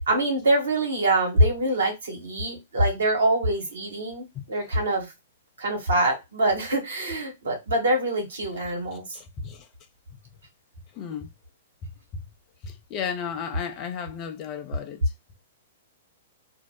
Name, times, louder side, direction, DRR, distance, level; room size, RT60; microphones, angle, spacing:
voice 1, 0.1-5.1 5.6-9.0, right 1 dB, 75° right, 1.2 m, -24 dB
voice 2, 4.3-4.7 8.9-9.7 10.9-11.3 12.6-15.1, left 7 dB, 35° left, 0.6 m, -35 dB
2.7 x 2.1 x 3.6 m
figure-of-eight pair, 110°, 0 cm